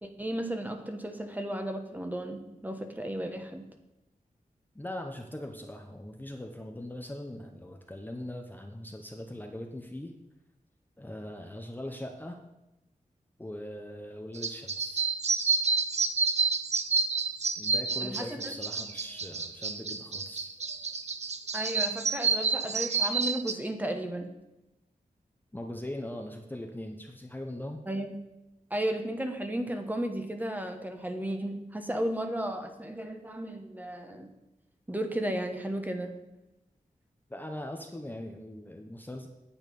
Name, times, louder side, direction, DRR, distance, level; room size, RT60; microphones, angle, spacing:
voice 1, 0.0-3.6 18.0-18.5 21.5-24.3 27.9-28.1 28.7-34.3 34.9-36.1, right 1 dB, 10° right, 5 dB, 1.1 m, -34 dB
voice 2, 4.7-10.1 11.0-12.4 13.4-15.1 17.6-20.5 25.5-27.8 37.3-39.3, left 1 dB, 15° left, 2 dB, 0.8 m, -41 dB
sound 1, 14.3-23.5, right 4 dB, 55° right, 0.7 m, -29 dB
9.1 x 8.3 x 5.4 m, 0.94 s
wide cardioid pair, 125°, 14 cm